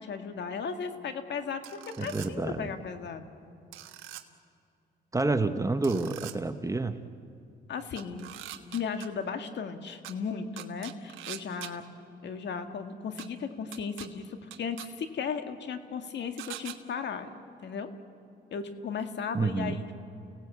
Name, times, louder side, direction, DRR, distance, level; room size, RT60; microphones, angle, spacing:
voice 1, 0.0-3.3 7.7-8.3 8.7-11.9 12.2-17.3 17.6-17.9 18.5-20.0, left 6 dB, 60° left, 7 dB, 1.9 m, -36 dB
sound 1, 1.6-2.3 3.7-4.2 5.8-6.3 8.0-9.1 10.0-10.1 10.6-11.7 13.2-13.3 13.7-14.1 14.5-14.9 16.4-16.8, right 13 dB, 85° right, 1.3 m, -42 dB
voice 2, 2.0-2.7 5.1-7.0 19.3-19.8, right 3 dB, 15° right, 9 dB, 1.1 m, -29 dB
29.5 x 17.5 x 8.4 m, 2.5 s
cardioid pair, 90°, 20 cm